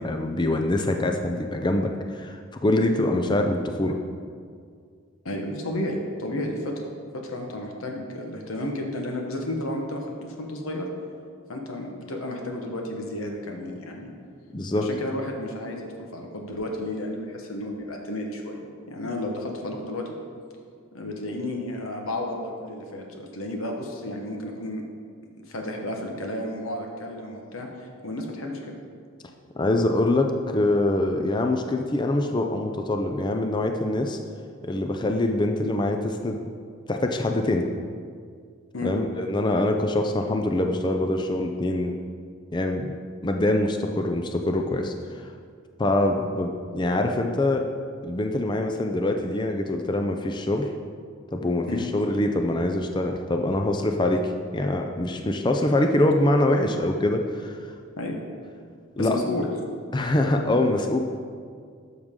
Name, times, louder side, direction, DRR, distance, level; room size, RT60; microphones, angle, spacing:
voice 1, 0.0-4.0 14.5-14.9 29.6-34.2 34.6-36.5 36.9-37.7 38.8-41.9 42.5-42.9 43.2-45.3 45.8-47.6 48.0-50.7 51.3-57.6 59.0-59.2 59.9-61.0, left 1 dB, 20° left, 4 dB, 0.4 m, -24 dB
voice 2, 5.2-6.9 7.1-10.9 11.5-14.1 14.8-20.1 20.9-24.8 25.5-28.8 38.7-38.9 51.7-51.9 58.0-58.2 59.0-59.5, left 1 dB, 85° left, 1 dB, 1.2 m, -32 dB
12.0 x 6.4 x 3.7 m, 2.1 s
head